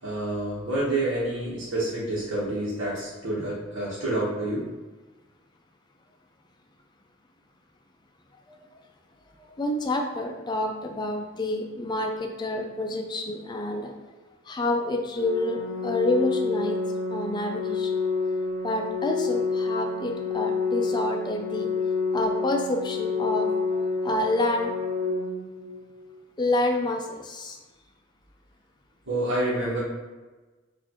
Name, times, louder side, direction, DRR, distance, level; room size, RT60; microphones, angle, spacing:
voice 1, 0.0-4.6 29.1-29.8, right 1 dB, 90° right, -9 dB, 1.1 m, -28 dB
voice 2, 9.4-13.9 14.5-16.8 17.1-17.9 18.6-21.7 22.1-24.7 26.4-27.6, left 2 dB, 20° left, 3 dB, 0.4 m, -28 dB
Organ, 15.2-26.2, left 4 dB, 80° left, 0.5 m, -28 dB
4.3 x 2.6 x 2.9 m, 1.2 s
head